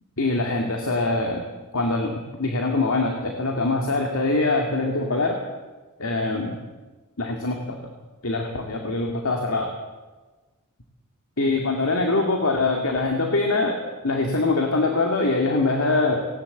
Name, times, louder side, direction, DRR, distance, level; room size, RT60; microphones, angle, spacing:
voice 1, 0.2-1.5 1.7-2.1 2.4-5.4 6.0-6.6 7.2-7.9 8.2-9.7 11.4-16.2, left 3 dB, 65° left, 2 dB, 2.3 m, -23 dB
18.5 x 18.5 x 7.9 m, 1.2 s
head